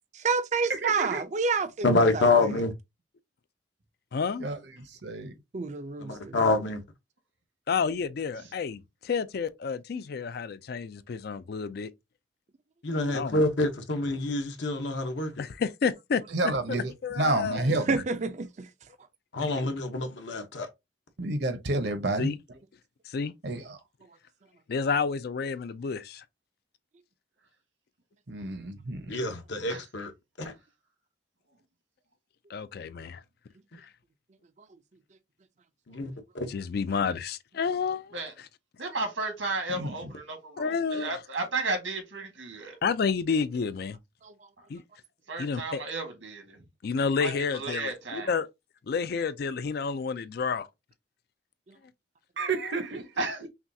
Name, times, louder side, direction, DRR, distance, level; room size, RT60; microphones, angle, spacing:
voice 1, 0.1-2.3 5.5-6.3 17.9-18.7 44.2-44.3 51.7-51.8, right 4 dB, 40° right, 0.4 m, -29 dB
voice 2, 0.7-1.2 4.4-4.6 5.0-5.3 16.3-18.0 21.2-22.3 23.4-23.8 28.3-29.1 39.7-40.1 52.4-53.3, right 2 dB, 60° right, 0.8 m, -30 dB
voice 3, 1.8-2.7 6.0-6.8 12.8-15.3 19.3-20.7 29.1-30.1 30.4-30.5 35.9-36.5, left 2 dB, 70° left, 0.9 m, -27 dB
voice 4, 4.1-4.5 7.7-11.9 13.1-13.4 15.4-16.2 17.0-17.7 22.2-22.4 23.1-23.3 24.7-26.2 32.5-33.2 36.5-38.5 40.6-41.2 42.8-44.0 44.7-44.8 45.4-45.8 46.8-48.5 48.9-50.7 52.5-52.7, left 5 dB, 55° left, 0.4 m, -30 dB
voice 5, 38.8-42.8 45.3-46.6 47.2-48.3 53.2-53.4, right 3 dB, 85° right, 1.6 m, -33 dB
5.8 x 2.3 x 2.7 m
head